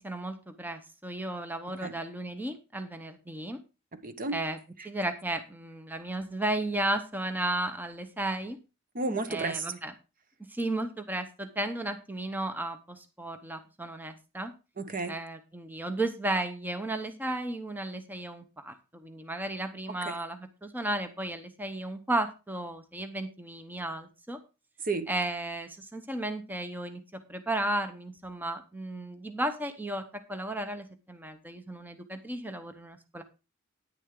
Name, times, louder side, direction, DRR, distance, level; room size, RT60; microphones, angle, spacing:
voice 1, 0.0-3.6 4.3-4.6 4.8-8.6 9.3-9.9 10.5-14.5 15.1-24.4 25.1-33.2, right 1 dB, 10° right, 0.9 m, -34 dB
voice 2, 3.9-4.4 8.9-9.7 14.8-15.1 20.0-20.2 24.8-25.1, right 3 dB, 40° right, 1.1 m, -32 dB
10.0 x 9.9 x 3.8 m
head